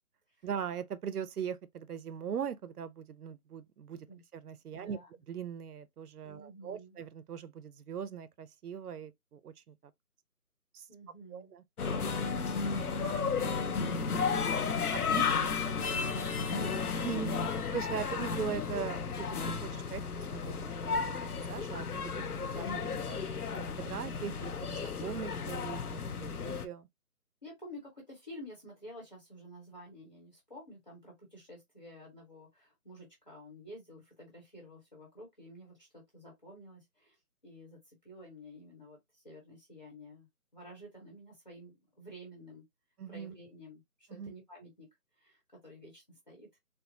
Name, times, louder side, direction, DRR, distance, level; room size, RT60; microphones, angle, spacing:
voice 1, 0.4-4.1 4.3-5.0 5.3-9.8 10.7-10.9 11.3-11.6 15.1-15.2 17.0-17.4 17.7-20.0 20.3-23.2 23.5-26.9 43.0-43.3 44.1-44.3, right 8 dB, 80° right, 0.6 m, -40 dB
voice 2, 4.7-5.1 6.2-7.0 10.9-11.5 12.9-14.4 14.9-17.2 27.4-37.2 37.4-42.6 43.1-44.9 45.2-46.5, equal, 30° left, 0.9 m, -51 dB
sound 1, 11.8-26.7, left 5 dB, 80° left, 0.7 m, -33 dB
4.3 x 2.0 x 2.7 m
figure-of-eight pair, 175°, 45 cm